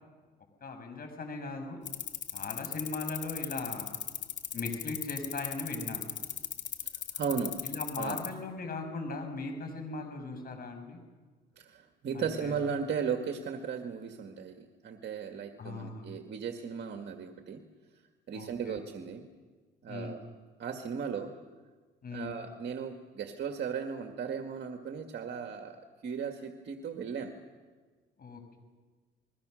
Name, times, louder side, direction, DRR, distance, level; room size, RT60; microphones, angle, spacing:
voice 1, 0.6-1.8 2.3-3.9 4.5-6.1 7.6-11.0 12.1-12.6 15.6-16.1 18.3-18.8 19.9-20.2 22.0-22.3 28.2-28.6, left 3 dB, 50° left, 5 dB, 6.1 m, -39 dB
sound 1, 1.9-8.3, left 9 dB, 65° left, 2.1 m, -36 dB
voice 2, 7.1-7.6 7.9-8.2 11.6-17.6 18.3-19.3 19.8-20.2 20.6-21.3 22.1-27.3, right 6 dB, 60° right, 5 dB, 1.9 m, -36 dB
30.0 x 21.5 x 6.4 m, 1.4 s
cardioid pair, 90°, 20 cm